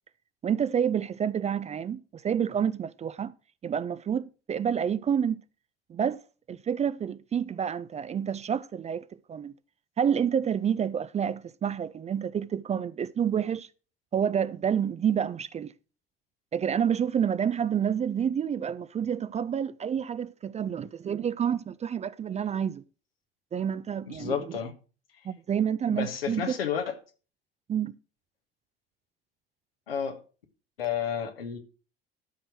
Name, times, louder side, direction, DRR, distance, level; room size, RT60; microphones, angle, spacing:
voice 1, 0.4-3.3 3.6-5.4 5.9-6.2 6.5-9.5 10.0-13.7 14.1-15.7 16.5-22.8 23.5-24.6 25.2-26.6 27.7-27.9, right 8 dB, 25° right, 0.5 m, -28 dB
voice 2, 24.1-24.7 25.9-27.0 29.9-30.2 30.8-31.6, left 8 dB, 75° left, 1.5 m, -31 dB
13.0 x 4.7 x 5.9 m
figure-of-eight pair, 60°, 29 cm